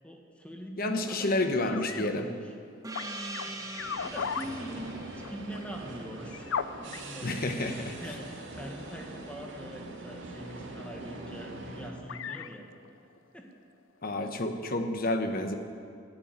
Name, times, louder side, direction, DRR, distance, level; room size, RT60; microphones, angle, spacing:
voice 1, 0.0-2.5 3.4-7.6 8.0-13.0 13.3-13.5, equal, 5° left, 1 dB, 1.5 m, -43 dB
voice 2, 0.8-2.2 7.2-8.0 14.0-15.6, left 2 dB, 50° left, 7 dB, 1.1 m, -29 dB
sound 1, 1.7-2.1 3.0-7.4 8.0-9.0 10.3-10.5 11.2-11.3 12.0-13.2, left 6 dB, 90° left, 0.5 m, -37 dB
Gong, 2.8-7.9, right 2 dB, 20° right, 1.1 m, -43 dB
sound 2, 3.8-11.9, right 2 dB, 70° right, 2.2 m, -43 dB
11.0 x 8.7 x 9.4 m, 2.4 s
head